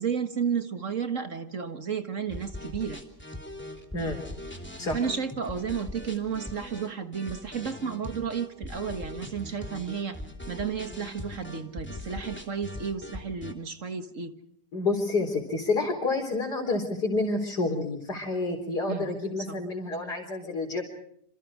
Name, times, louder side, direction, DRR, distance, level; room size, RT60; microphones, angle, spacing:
voice 1, 0.0-3.0 4.9-10.2 10.5-14.3 18.9-19.1 19.5-19.6, right 6 dB, 50° right, 8 dB, 1.9 m, -32 dB
sound 1, 2.3-13.5, left 1 dB, 5° left, 2.8 m, -41 dB
voice 2, 14.7-20.8, left 3 dB, 75° left, -2 dB, 4.6 m, -29 dB
27.5 x 27.0 x 5.0 m, 0.69 s
omnidirectional pair, 1.8 m